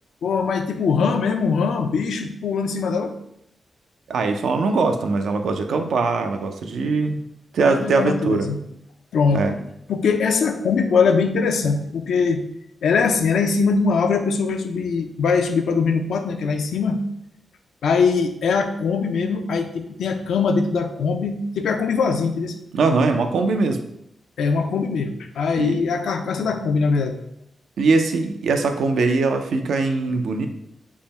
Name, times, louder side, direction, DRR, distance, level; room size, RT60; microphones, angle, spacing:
voice 1, 0.2-3.1 7.6-8.6 9.1-9.6 9.9-12.4 12.8-17.0 17.8-22.6 24.4-27.2, left 5 dB, 90° left, 6 dB, 0.4 m, -22 dB
voice 2, 4.1-7.2 7.5-8.5 9.3-9.6 22.7-23.8 25.6-25.8 27.8-30.5, right 3 dB, 85° right, 6 dB, 0.4 m, -21 dB
3.6 x 2.1 x 4.1 m, 0.76 s
cardioid pair, 75°, 0 cm